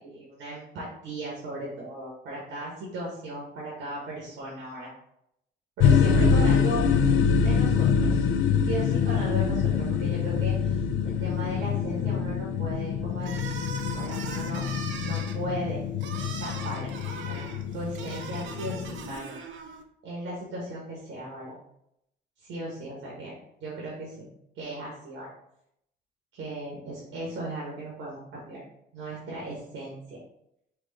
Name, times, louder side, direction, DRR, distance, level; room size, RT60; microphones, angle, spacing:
voice 1, 0.0-4.9 5.8-6.9 7.4-8.2 8.6-13.5 13.9-14.6 15.0-15.8 16.4-16.9 17.3-19.4 20.0-21.6 22.4-23.3 23.6-24.3 24.5-25.3 26.3-28.6 28.9-30.2, right 1 dB, 85° right, -4 dB, 1.3 m, -37 dB
sound 1, 5.8-19.1, left 6 dB, 85° left, 0.4 m, -25 dB
sound 2, 13.2-19.8, right 5 dB, 70° right, 0.6 m, -40 dB
4.5 x 2.5 x 4.0 m, 0.77 s
cardioid pair, 90°, 20 cm